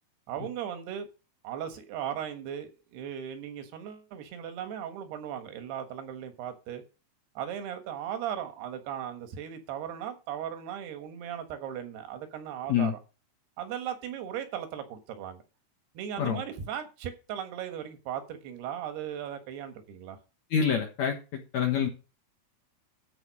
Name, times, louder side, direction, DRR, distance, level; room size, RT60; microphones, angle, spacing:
voice 1, 0.3-1.1 1.4-6.8 7.4-13.0 13.6-15.4 16.0-20.2, right 9 dB, 80° right, 3.5 m, -37 dB
voice 2, 20.5-21.9, left 7 dB, 60° left, 2.1 m, -27 dB
13.0 x 4.8 x 6.2 m
omnidirectional pair, 4.7 m